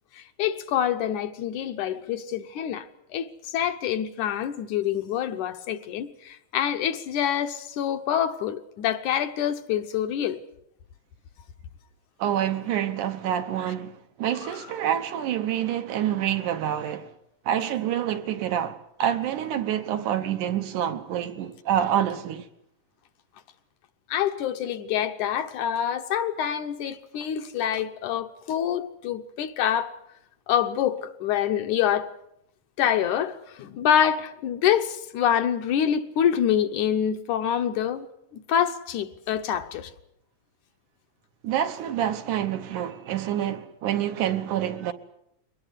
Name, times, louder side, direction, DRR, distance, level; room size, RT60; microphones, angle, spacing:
voice 1, 0.2-2.9 3.1-10.4 14.4-14.7 24.1-29.9 30.5-32.1 32.8-38.1 38.3-39.9, left 9 dB, 70° left, 2.3 m, -26 dB
voice 2, 12.2-17.1 17.5-22.5 41.4-44.9, right 10 dB, 75° right, 2.5 m, -27 dB
22.5 x 19.0 x 8.1 m
omnidirectional pair, 3.8 m